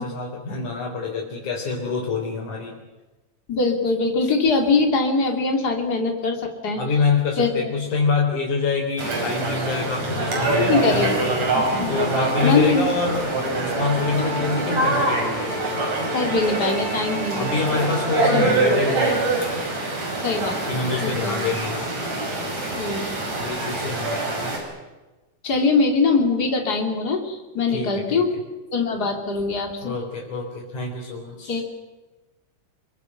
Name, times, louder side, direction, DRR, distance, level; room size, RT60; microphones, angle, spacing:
voice 1, 0.0-2.7 6.8-11.5 11.9-13.2 13.5-15.6 17.4-19.4 20.7-21.9 23.4-24.5 27.7-28.2 29.8-31.6, left 4 dB, 75° left, -3 dB, 5.1 m, -26 dB
voice 2, 3.5-6.8 7.4-7.6 10.6-11.3 11.5-12.0 12.4-12.8 16.1-17.8 20.2-20.7 21.0-21.4 22.8-23.2 23.8-23.9 25.4-28.3 28.7-29.9 31.5-31.6, left 4 dB, 30° left, 2 dB, 3.4 m, -22 dB
sound 1, 9.0-24.6, right 2 dB, 60° right, 6.6 m, -24 dB
28.0 x 23.5 x 6.0 m, 1.1 s
omnidirectional pair, 3.5 m